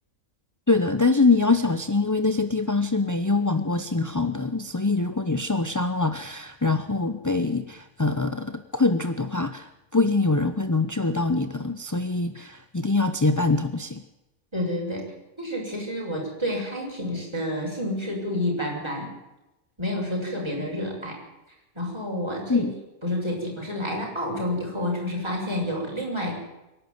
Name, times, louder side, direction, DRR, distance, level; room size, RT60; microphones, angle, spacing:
voice 1, 0.7-14.0 22.5-22.7, left 3 dB, 20° left, 9 dB, 0.5 m, -24 dB
voice 2, 14.5-15.0 15.4-19.1 19.8-21.2 21.8-22.7 23.0-26.4, left 1 dB, 15° right, -2 dB, 7.2 m, -29 dB
25.0 x 11.5 x 9.4 m, 0.97 s
omnidirectional pair, 1.5 m